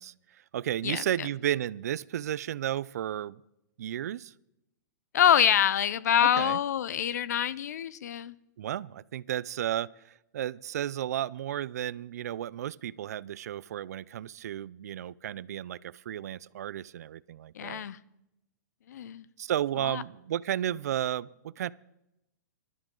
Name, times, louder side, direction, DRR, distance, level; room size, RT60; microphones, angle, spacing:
voice 1, 0.0-3.4 3.8-4.3 6.4-6.6 8.6-17.9 19.4-21.7, right 11 dB, 60° right, 21 dB, 0.4 m, -33 dB
voice 2, 5.1-8.3 17.5-18.0 18.9-19.3 19.8-20.0, left 10 dB, 60° left, 19 dB, 0.6 m, -25 dB
20.5 x 13.0 x 3.8 m, 0.86 s
hypercardioid pair, 175°, 10 cm